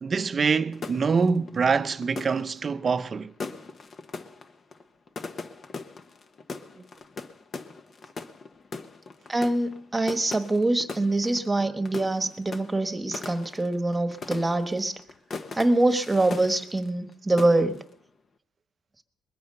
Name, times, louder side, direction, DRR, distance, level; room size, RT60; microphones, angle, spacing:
voice 1, 0.0-3.3, right 5 dB, 40° right, 0.7 m, -25 dB
sound 1, 0.7-17.1 17.4-17.9, left 4 dB, 45° left, 1.1 m, -40 dB
voice 2, 9.3-15.0 15.6-17.8, right 2 dB, 20° right, 1.3 m, -24 dB
21.0 x 9.4 x 6.6 m
cardioid pair, 90°, 0 cm